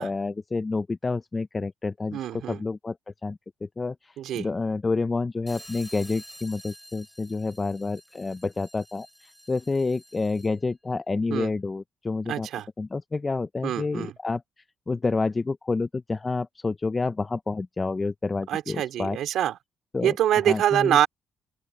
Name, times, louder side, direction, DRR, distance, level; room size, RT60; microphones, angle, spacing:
voice 1, 0.0-2.2 2.5-3.0 3.2-12.5 12.8-14.4 14.9-19.2 19.9-20.1 20.5-21.0, left 3 dB, 25° left, 0.6 m, -29 dB
voice 2, 2.1-2.6 4.2-4.5 11.3-11.5 12.3-12.7 13.6-14.1 18.5-19.6 20.0-21.1, right 11 dB, 80° right, 3.0 m, -25 dB
sound 1, 5.5-10.7, equal, ahead, 4.1 m, -49 dB
open air
cardioid pair, 90°, 0 cm